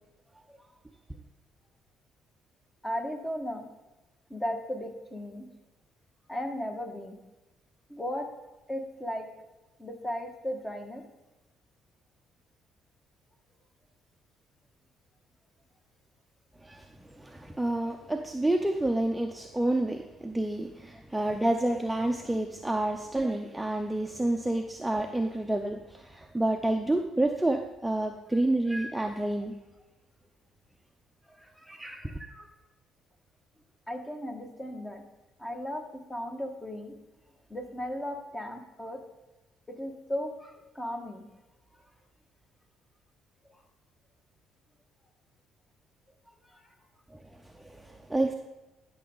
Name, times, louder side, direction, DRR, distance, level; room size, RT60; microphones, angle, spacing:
voice 1, 2.8-3.6 4.3-5.5 6.3-7.2 7.9-8.3 8.7-9.3 9.8-11.0 31.4-32.5 33.9-35.0 35.4-35.8 36.1-36.9 37.5-39.0 39.7-41.2 46.5-46.7 47.8-47.9, equal, 15° left, 4 dB, 1.8 m, -36 dB
voice 2, 16.6-29.6 31.7-32.3 47.1-47.2 47.5-48.3, right 1 dB, 10° right, 4 dB, 0.7 m, -29 dB
11.5 x 6.3 x 4.0 m, 1.1 s
hypercardioid pair, 55°, 0 cm